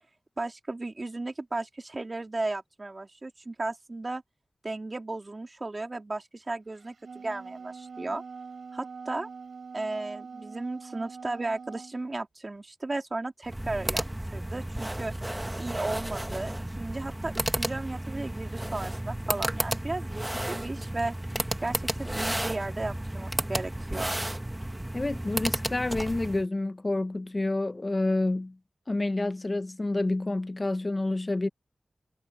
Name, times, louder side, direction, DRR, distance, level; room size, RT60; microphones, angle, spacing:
voice 1, 0.4-4.2 4.6-8.2 8.7-9.3 9.7-15.1 15.6-21.1 21.6-24.2, right 2 dB, 45° right, 3.5 m, -35 dB
Wind instrument woodwind instrument, 6.8-12.0, right 5 dB, 80° right, 7.9 m, -43 dB
sound 1, 13.4-26.4, right 1 dB, 15° right, 2.1 m, -33 dB
voice 2, 24.9-28.6 28.9-31.5, left 2 dB, 40° left, 1.2 m, -28 dB
cardioid pair, 45°, 0 cm